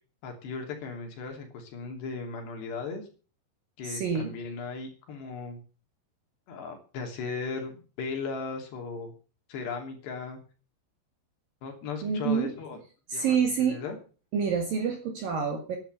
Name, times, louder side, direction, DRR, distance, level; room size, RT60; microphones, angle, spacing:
voice 1, 0.2-3.0 3.8-5.6 6.5-9.1 9.5-10.4 11.6-12.8 13.1-14.0, left 4 dB, 70° left, 3 dB, 5.0 m, -37 dB
voice 2, 3.8-4.3 12.0-12.5 13.1-13.8 14.3-15.8, right 6 dB, 55° right, 3 dB, 3.5 m, -27 dB
11.0 x 10.5 x 8.1 m, 0.37 s
omnidirectional pair, 5.1 m